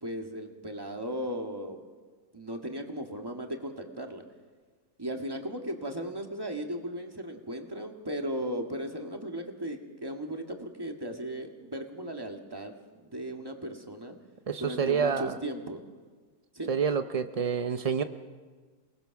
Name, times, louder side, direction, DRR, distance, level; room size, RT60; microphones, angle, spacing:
voice 1, 0.0-1.8 2.3-4.2 5.0-12.7 13.0-14.2 14.6-15.8 16.5-16.7, right 1 dB, 15° right, 3 dB, 1.7 m, -36 dB
voice 2, 14.5-15.4 16.7-18.0, right 6 dB, 75° right, 8 dB, 0.3 m, -28 dB
28.0 x 19.0 x 5.9 m, 1.5 s
omnidirectional pair, 1.7 m